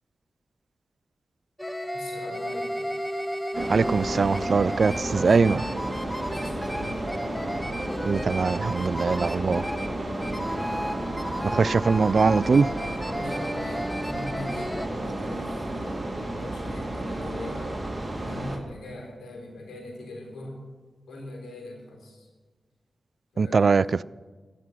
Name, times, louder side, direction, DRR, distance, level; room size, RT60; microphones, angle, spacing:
sound 1, 1.6-14.9, equal, 5° left, 1.1 m, -33 dB
voice 1, 1.9-2.8 5.0-7.1 10.0-11.3 13.0-17.9 18.1-20.6 21.1-22.3 23.3-24.0, left 1 dB, 85° left, 3.4 m, -42 dB
sound 2, 3.5-18.6, right 1 dB, 25° right, 2.4 m, -32 dB
voice 2, 3.6-5.6 8.0-9.6 11.4-12.7 23.4-24.0, right 4 dB, 60° right, 0.3 m, -22 dB
15.0 x 6.2 x 10.0 m
supercardioid pair, 40°, 0 cm